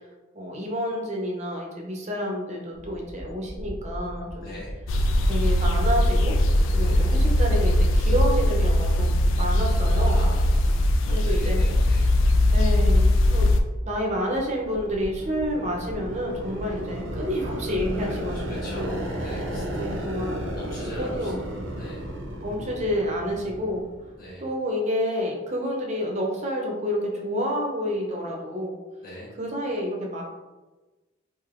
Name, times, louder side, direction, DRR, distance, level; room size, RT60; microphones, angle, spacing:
voice 1, 0.3-4.5 5.2-6.4 6.7-10.3 11.1-11.6 12.5-13.5 13.8-19.0 19.7-20.5 21.0-21.4 22.4-23.8 24.4-28.8 29.4-30.2, equal, 35° right, -1 dB, 0.6 m, -29 dB
sound 1, 2.7-18.5, equal, 10° left, 0.8 m, -36 dB
voice 2, 4.4-4.7 6.8-7.1 10.0-12.1 16.7-16.8 18.5-20.1 20.6-21.3 21.8-22.1 24.2-24.5 29.0-29.3, left 1 dB, 50° left, -7 dB, 1.3 m, -41 dB
sound 2, 4.9-13.6, left 1 dB, 85° left, 0.3 m, -20 dB
sound 3, 14.5-24.3, right 1 dB, 80° right, 0.6 m, -34 dB
3.2 x 2.6 x 2.4 m, 1.2 s
head